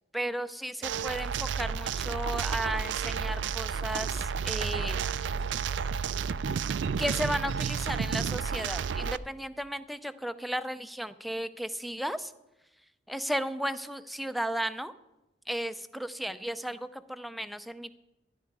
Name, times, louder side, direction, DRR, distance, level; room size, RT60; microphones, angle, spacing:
voice 1, 0.1-5.0 7.0-12.3 13.1-14.9 15.5-18.0, equal, ahead, 11 dB, 0.5 m, -34 dB
sound 1, 0.8-9.2, right 6 dB, 80° right, 0.4 m, -31 dB
14.0 x 11.0 x 4.7 m, 0.95 s
head